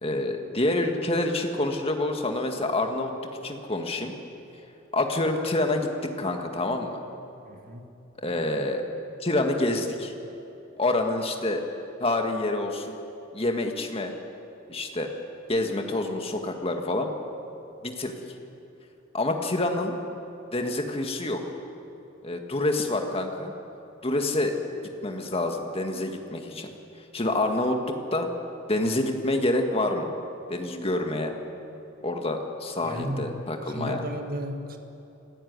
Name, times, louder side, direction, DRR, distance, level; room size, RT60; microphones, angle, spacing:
voice 1, 0.0-3.1 3.4-4.1 4.9-7.0 8.2-8.8 9.2-10.1 10.8-11.6 12.0-13.0 13.3-14.1 14.7-15.1 15.5-17.1 17.8-18.2 19.1-20.0 20.5-21.4 22.2-23.5 24.0-24.6 25.0-26.7 27.1-28.3 28.7-30.1 30.5-31.3 32.0-34.0, left 2 dB, 30° left, 4 dB, 1.9 m, -27 dB
voice 2, 7.5-7.9 32.8-33.3 33.6-34.8, equal, 45° right, 5 dB, 1.9 m, -34 dB
26.0 x 13.5 x 9.6 m, 2.8 s
head